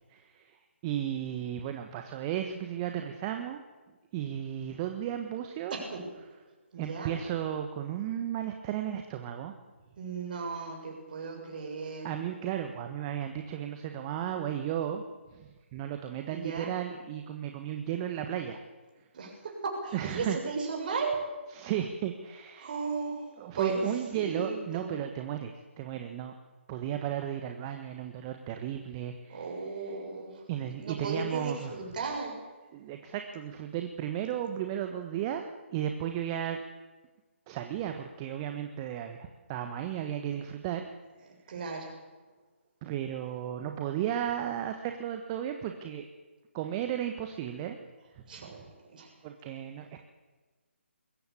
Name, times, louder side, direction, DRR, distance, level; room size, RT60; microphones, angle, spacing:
voice 1, 0.1-0.5 0.8-3.6 4.1-5.8 6.8-9.5 12.0-15.0 15.3-18.6 19.9-20.4 21.5-22.7 23.4-26.3 26.7-29.5 29.8-29.9 30.5-31.7 32.7-36.6 37.5-40.8 42.8-46.1 46.5-47.8 48.4-48.6 49.2-50.0, right 10 dB, 25° right, 6 dB, 1.4 m, -34 dB
voice 2, 5.7-6.1 6.7-7.2 10.0-12.1 16.3-16.7 19.1-21.2 22.6-24.9 29.3-30.4 30.8-32.4 41.5-41.9 48.3-48.6 48.9-49.1, right 4 dB, 40° right, 1 dB, 6.9 m, -35 dB
21.5 x 15.5 x 8.5 m, 1.3 s
figure-of-eight pair, 145°, 7 cm